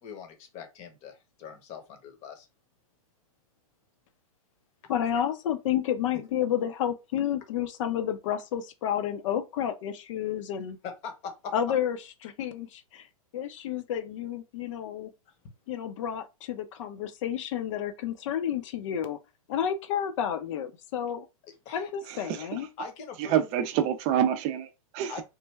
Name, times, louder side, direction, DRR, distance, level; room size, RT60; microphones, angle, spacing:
voice 1, 0.0-2.5 10.8-11.5 15.4-15.5 19.6-19.7 21.4-21.9 22.8-23.7 25.1-25.2, left 5 dB, 35° left, 0.9 m, -42 dB
voice 2, 4.9-10.8 11.5-12.0 12.2-13.1 13.3-15.1 15.7-19.2 19.5-21.3 21.7-22.7, left 9 dB, 55° left, 0.7 m, -30 dB
voice 3, 22.1-22.6 23.3-25.1, right 10 dB, 35° right, 0.5 m, -27 dB
3.2 x 2.1 x 3.3 m
hypercardioid pair, 130°, 19 cm